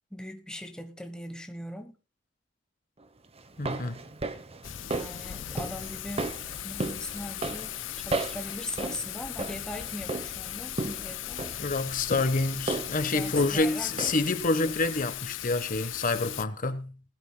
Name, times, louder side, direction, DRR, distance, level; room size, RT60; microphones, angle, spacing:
voice 1, 0.1-2.0 4.8-11.5 13.1-13.9, left 1 dB, 5° left, 1.2 m, -40 dB
sound 1, 3.4-14.4 14.7-14.8, right 2 dB, 35° right, 1.0 m, -36 dB
voice 2, 3.6-4.0 11.6-17.0, left 3 dB, 45° left, 1.3 m, -28 dB
Thunder / Rain, 4.6-16.5, left 13 dB, 85° left, 0.5 m, -38 dB
20.0 x 12.5 x 2.3 m
head